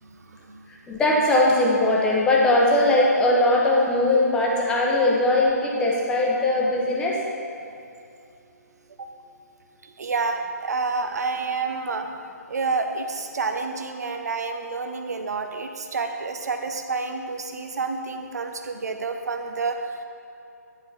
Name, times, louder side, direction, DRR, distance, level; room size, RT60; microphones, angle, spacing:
voice 1, 0.0-0.6 9.0-9.1 9.8-12.2 12.5-20.1, right 4 dB, 70° right, 6 dB, 0.7 m, -29 dB
voice 2, 0.7-7.2, left 2 dB, 10° left, -3 dB, 0.9 m, -20 dB
9.7 x 4.6 x 4.7 m, 2.6 s
hypercardioid pair, 150°, 9 cm